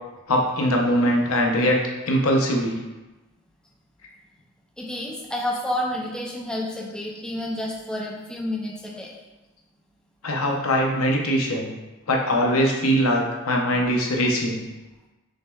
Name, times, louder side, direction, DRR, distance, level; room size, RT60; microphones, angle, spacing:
voice 1, 0.3-1.8 2.1-2.8 10.2-11.7 12.1-14.6, equal, 90° left, 0 dB, 0.7 m, -21 dB
voice 2, 4.8-9.1, left 1 dB, 5° left, -3 dB, 0.5 m, -30 dB
6.2 x 3.0 x 2.3 m, 1.1 s
head